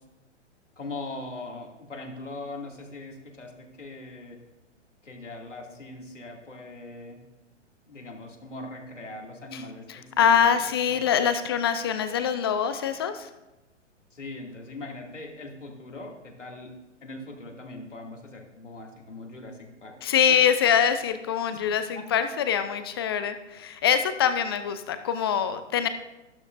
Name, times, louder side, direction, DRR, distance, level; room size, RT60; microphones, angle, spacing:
voice 1, 0.8-4.4 5.0-7.2 7.9-11.0 14.1-16.7 17.0-20.0 20.3-20.4 21.5-21.6 21.9-22.3, left 2 dB, 80° left, 0 dB, 2.6 m, -41 dB
voice 2, 9.9-13.3 20.0-25.9, left 8 dB, 20° left, 10 dB, 0.4 m, -24 dB
15.0 x 12.0 x 2.6 m, 1.0 s
figure-of-eight pair, 115°, 36 cm